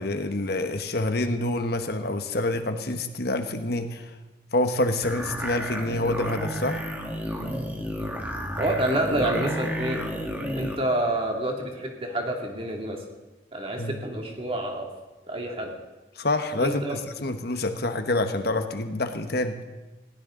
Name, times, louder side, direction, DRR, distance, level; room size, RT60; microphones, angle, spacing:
voice 1, 0.0-4.1 4.5-6.8 13.8-14.0 16.2-19.6, left 2 dB, 55° left, 7 dB, 1.1 m, -27 dB
sound 1, 5.0-10.8, equal, 10° right, 1.8 m, -32 dB
voice 2, 8.6-10.1 10.6-13.0 13.5-14.9 15.3-15.7 16.6-17.0, right 1 dB, 30° right, 1 dB, 2.4 m, -28 dB
20.0 x 16.5 x 3.8 m, 1.1 s
head